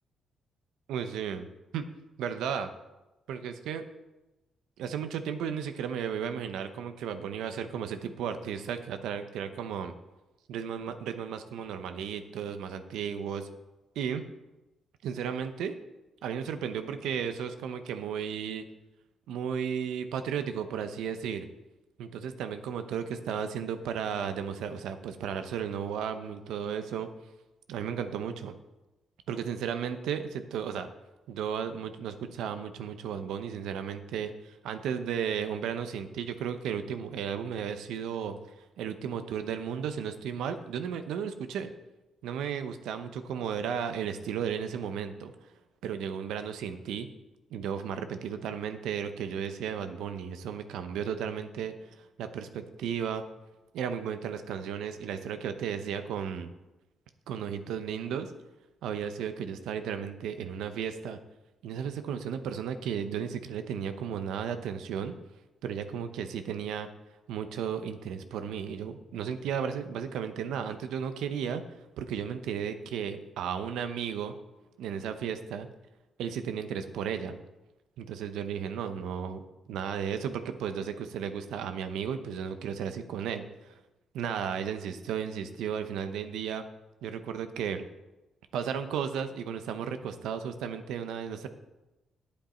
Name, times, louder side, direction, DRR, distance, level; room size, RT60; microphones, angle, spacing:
voice 1, 0.9-1.5 1.7-1.9 2.2-2.7 3.3-3.8 4.8-9.9 10.5-13.5 14.0-14.2 15.0-15.8 16.2-18.6 19.3-21.5 22.0-27.1 27.7-28.5 29.3-30.9 31.3-38.4 38.8-41.7 42.2-45.3 45.8-47.1 47.5-53.2 53.7-56.5 57.3-58.3 58.8-61.2 61.6-65.1 65.6-66.9 67.3-71.6 72.0-74.3 74.8-75.7 76.2-77.4 78.0-79.4 79.7-83.8 84.1-86.6 87.0-87.8 88.5-91.5, right 8 dB, 90° right, 9 dB, 0.8 m, -34 dB
10.0 x 8.6 x 4.3 m, 1.0 s
cardioid pair, 95°, 0 cm